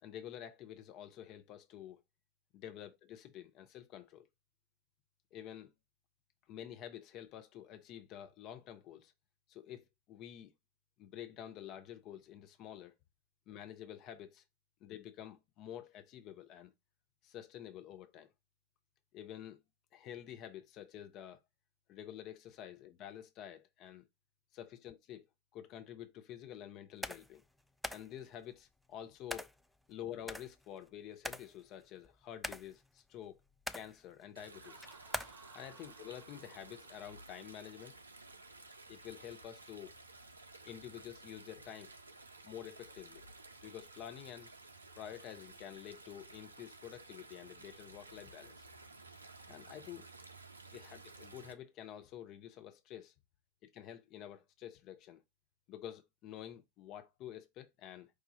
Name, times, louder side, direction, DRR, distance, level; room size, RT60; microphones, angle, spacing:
voice 1, 0.0-2.0 2.5-4.3 5.3-5.7 6.5-9.1 9.5-10.5 11.0-12.9 13.5-14.4 14.8-16.7 17.2-18.3 19.1-19.6 19.9-21.4 21.9-24.1 24.5-25.3 25.5-27.4 27.9-29.5 29.9-33.4 33.7-34.9 35.5-38.0 38.9-39.9 40.6-41.9 42.4-43.3 43.6-44.5 44.9-48.6 49.5-50.1 50.7-53.1 53.6-55.2 55.7-58.1, left 11 dB, 35° left, 0.6 m, -49 dB
sound 1, 27.0-27.4 27.8-28.1 29.3-29.6 30.3-30.9 31.2-31.6 32.0-32.9 33.5-34.0 34.8-35.3, left 1 dB, ahead, 0.3 m, -42 dB
Stream, 34.4-51.5, right 3 dB, 80° right, 0.4 m, -55 dB
Laughter, 34.5-38.2, right 4 dB, 30° right, 0.8 m, -62 dB
4.8 x 2.4 x 4.1 m
figure-of-eight pair, 90°, 0 cm